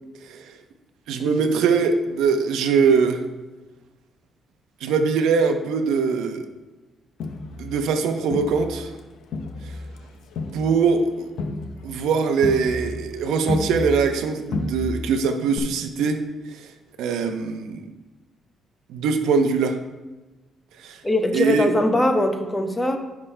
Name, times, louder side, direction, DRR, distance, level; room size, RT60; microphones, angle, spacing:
voice 1, 1.1-3.2 4.8-6.5 7.6-8.9 10.5-11.3 11.8-16.2 16.5-16.7 17.0-17.8 18.9-19.8 20.8-21.0 21.3-21.7, right 5 dB, 90° right, 7 dB, 0.7 m, -22 dB
Crowd, 7.2-9.0 9.3-14.2 14.5-15.2 15.6-15.7, left 3 dB, 75° left, 0.8 m, -31 dB
voice 2, 21.0-23.0, left 1 dB, 15° left, 4 dB, 0.9 m, -21 dB
14.0 x 6.0 x 2.2 m, 1.1 s
cardioid pair, 90°, 0 cm